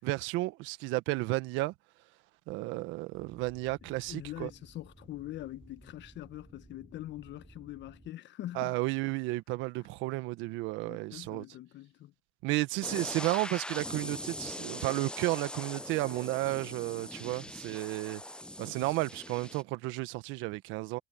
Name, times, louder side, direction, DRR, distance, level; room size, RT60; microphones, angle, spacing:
voice 1, 0.0-1.7 2.5-4.5 8.5-11.4 12.4-18.2 18.6-21.0, right 20 dB, 75° right, 1.4 m, -33 dB
sound 1, 3.1-8.1, right 2 dB, 10° right, 6.0 m, -57 dB
voice 2, 3.8-8.8 10.8-12.1 12.9-13.0, left 14 dB, 65° left, 1.5 m, -43 dB
sound 2, 12.8-19.6, left 1 dB, 5° left, 0.8 m, -41 dB
hypercardioid pair, 60°, 20 cm